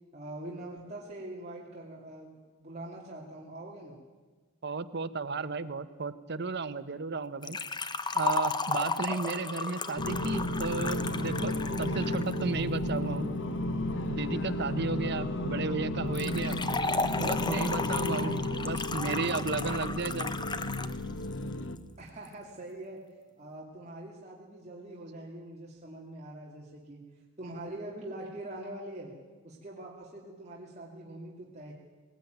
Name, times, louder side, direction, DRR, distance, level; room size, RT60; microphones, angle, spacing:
voice 1, 0.1-4.0 22.0-23.0 23.4-27.0 27.4-29.2 29.4-31.7, right 1 dB, 35° right, -4 dB, 2.8 m, -43 dB
voice 2, 4.6-7.6 8.1-11.5 11.8-13.3 14.1-16.6 17.2-18.4 18.6-20.4, right 4 dB, 60° right, 12 dB, 1.0 m, -33 dB
Liquid, 7.4-12.4 16.2-21.0 21.2-21.3 22.3-22.4, left 3 dB, 20° left, 0.9 m, -34 dB
sound 1, 10.0-21.8, left 1 dB, 65° left, 1.2 m, -33 dB
19.0 x 19.0 x 9.2 m, 1.4 s
head